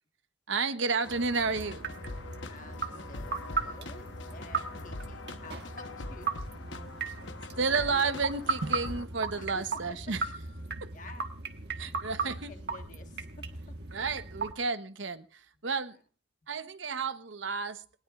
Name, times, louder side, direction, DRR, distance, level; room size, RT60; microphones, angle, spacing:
voice 1, 0.5-1.9 7.6-10.2 10.8-10.9 11.8-12.5 13.9-16.0 16.5-17.8, right 4 dB, 85° right, 1.0 m, -31 dB
sound 1, 1.0-9.1, left 3 dB, 80° left, 1.1 m, -43 dB
sound 2, 1.1-14.5, right 4 dB, 60° right, 1.4 m, -37 dB
voice 2, 2.5-6.3 9.4-10.0 10.9-11.3 12.2-13.8, left 2 dB, 40° left, 1.4 m, -50 dB
20.0 x 19.5 x 2.5 m
head